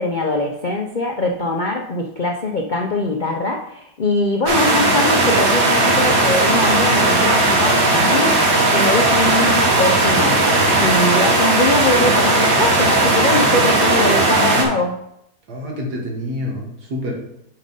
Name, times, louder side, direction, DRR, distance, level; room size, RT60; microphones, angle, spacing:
voice 1, 0.0-8.4 8.7-10.4 10.8-14.9, left 2 dB, 65° left, 2 dB, 0.4 m, -22 dB
sound 1, 4.5-14.6, right 2 dB, 45° right, 1.5 m, -16 dB
voice 2, 15.5-17.2, left 1 dB, 85° right, -1 dB, 2.3 m, -27 dB
5.8 x 5.2 x 5.3 m, 0.77 s
omnidirectional pair, 1.7 m